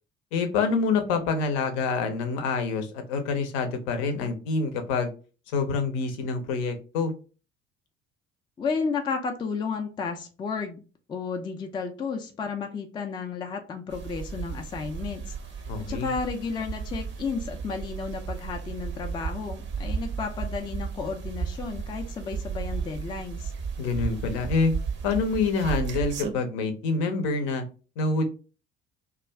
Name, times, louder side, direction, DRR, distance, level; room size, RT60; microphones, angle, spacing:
voice 1, 0.3-5.1 5.5-7.1 15.7-16.1 23.8-24.7 25.0-27.6 28.0-28.2, left 4 dB, 60° left, 7 dB, 0.7 m, -26 dB
voice 2, 8.6-10.8 11.1-23.5, left 5 dB, 15° left, 4 dB, 0.4 m, -33 dB
sound 1, 13.9-26.3, right 6 dB, 35° right, 0.6 m, -34 dB
2.4 x 2.2 x 3.3 m, 0.35 s
figure-of-eight pair, 55°, 34 cm